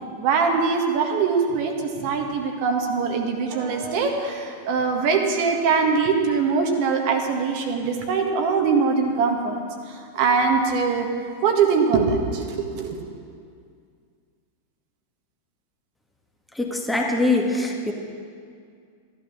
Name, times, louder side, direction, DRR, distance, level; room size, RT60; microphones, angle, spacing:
voice 1, 0.2-9.6 10.1-11.1 11.4-13.0, right 5 dB, 45° right, 3 dB, 1.7 m, -22 dB
voice 2, 16.5-17.9, left 2 dB, 5° left, 0 dB, 1.7 m, -23 dB
14.5 x 11.5 x 6.5 m, 2.2 s
figure-of-eight pair, 90°, 0 cm